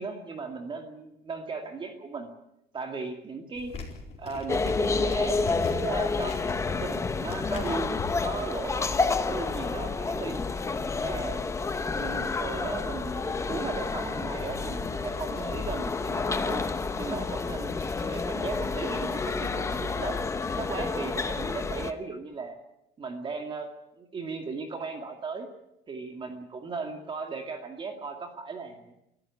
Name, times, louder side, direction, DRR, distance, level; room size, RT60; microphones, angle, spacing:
voice 1, 0.0-2.3 2.7-3.7 4.2-10.4 11.0-11.4 11.9-16.7 17.0-20.2 20.6-22.6 23.0-23.7 23.9-25.5 25.9-28.9, right 4 dB, 30° right, 4 dB, 2.3 m, -37 dB
sound 1, 3.5-8.2, left 4 dB, 40° left, 4.6 m, -40 dB
sound 2, 4.5-21.9, left 4 dB, 15° left, 1.0 m, -29 dB
sound 3, 14.4-21.0, left 7 dB, 65° left, 3.0 m, -48 dB
24.0 x 14.0 x 9.6 m, 0.83 s
cardioid pair, 170°, 17 cm